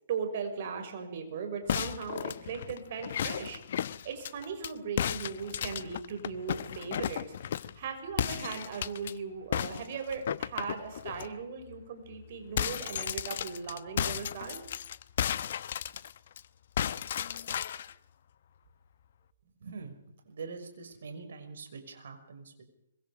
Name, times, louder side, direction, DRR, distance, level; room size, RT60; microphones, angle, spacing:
voice 1, 0.1-3.6 4.0-14.6, right 6 dB, 50° right, 6 dB, 6.0 m, -38 dB
sound 1, 1.7-4.7 5.0-7.8 8.2-9.1 9.5-11.3 11.7-11.8 12.1-16.4 16.8-17.9, left 9 dB, 55° left, 0.9 m, -34 dB
voice 2, 19.4-19.9 20.3-22.6, right 4 dB, 65° right, 6 dB, 6.0 m, -44 dB
25.5 x 24.0 x 5.1 m, 0.80 s
figure-of-eight pair, 130°, 0 cm